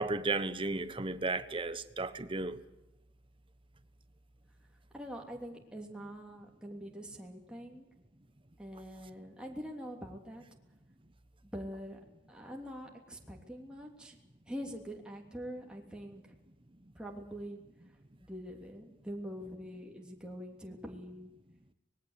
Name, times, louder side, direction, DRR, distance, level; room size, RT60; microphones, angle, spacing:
voice 1, 0.0-2.6, right 3 dB, 30° right, 1.2 m, -34 dB
voice 2, 4.9-7.9 8.6-10.4 11.5-12.0 12.3-14.2 14.5-16.3 16.9-17.6 18.2-21.3, equal, 5° right, 3.1 m, -44 dB
25.0 x 20.5 x 8.3 m
head